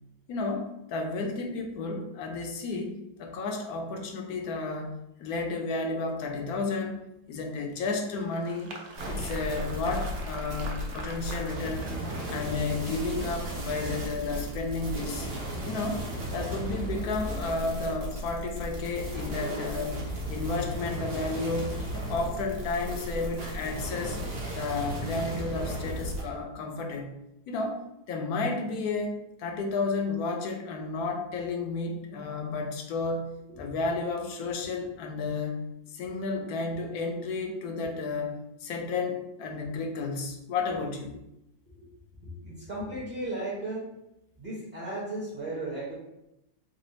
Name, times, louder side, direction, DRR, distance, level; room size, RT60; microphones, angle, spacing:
voice 1, 0.3-2.9 3.2-4.9 5.2-7.0 7.3-8.7 9.1-11.9 12.3-15.3 15.6-16.0 16.3-20.0 20.3-24.2 24.5-27.1 27.5-33.3 33.6-35.6 35.9-41.2, left 3 dB, 70° left, 2 dB, 1.1 m, -32 dB
Applause, 7.7-13.0, right 3 dB, 65° right, 0.7 m, -44 dB
sound 1, 8.9-26.2, right 1 dB, 80° right, 1.7 m, -35 dB
voice 2, 42.2-43.9 44.4-45.9, right 2 dB, 25° right, -7 dB, 0.9 m, -35 dB
4.0 x 2.0 x 4.0 m, 0.85 s
omnidirectional pair, 1.7 m